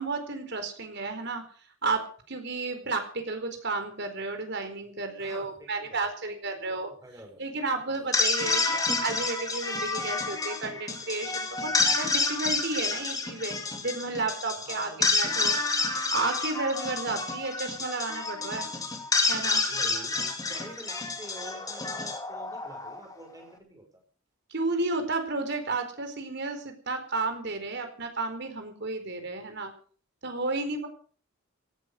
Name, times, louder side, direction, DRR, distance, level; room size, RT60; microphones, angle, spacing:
voice 1, 0.0-1.4 1.8-6.9 7.4-15.5 16.1-18.7 19.3-19.6 24.5-29.7 30.2-30.9, right 3 dB, 60° right, 7 dB, 4.4 m, -32 dB
voice 2, 5.2-7.5 7.9-8.1 14.5-15.2 19.7-24.0, right 1 dB, 15° right, 3 dB, 6.2 m, -48 dB
sound 1, 7.9-23.2, left 3 dB, 20° left, 2.7 m, -29 dB
17.5 x 11.0 x 6.6 m, 0.43 s
head